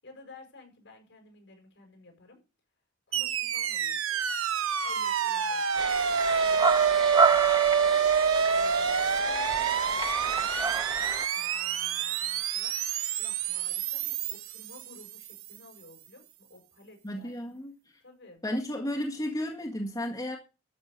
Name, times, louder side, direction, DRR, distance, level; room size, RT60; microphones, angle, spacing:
voice 1, 0.0-2.4 3.1-4.2 4.8-6.1 6.4-8.0 8.5-12.7 13.2-17.3 18.0-18.4, left 2 dB, 60° left, 6.4 m, -53 dB
sound 1, 3.1-15.4, right 7 dB, 85° right, 0.9 m, -27 dB
sound 2, 5.7-11.3, right 4 dB, 20° right, 0.6 m, -30 dB
voice 2, 17.0-18.0 18.4-20.4, left 1 dB, 20° left, 1.9 m, -33 dB
13.0 x 7.7 x 6.8 m
head